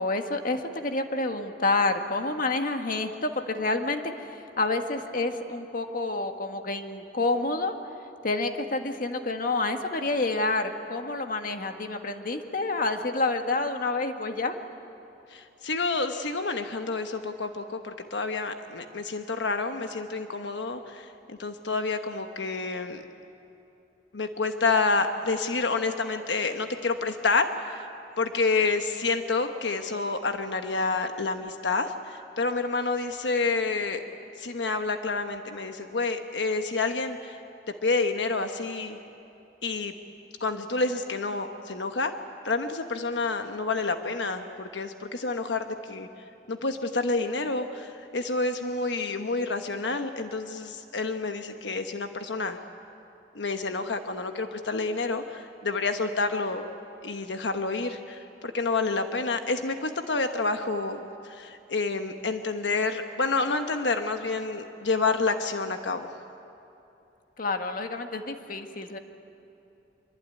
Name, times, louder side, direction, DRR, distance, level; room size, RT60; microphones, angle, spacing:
voice 1, 0.0-4.0 4.6-7.7 8.2-14.6 67.4-69.0, left 3 dB, 50° left, 5 dB, 1.7 m, -28 dB
voice 2, 15.3-23.0 24.1-27.9 28.2-34.0 34.4-37.4 37.8-39.0 39.6-39.9 40.4-42.1 42.4-46.1 46.5-52.6 53.3-56.6 57.0-66.1, left 3 dB, 85° left, 6 dB, 1.2 m, -29 dB
25.5 x 23.5 x 9.4 m, 2.8 s
head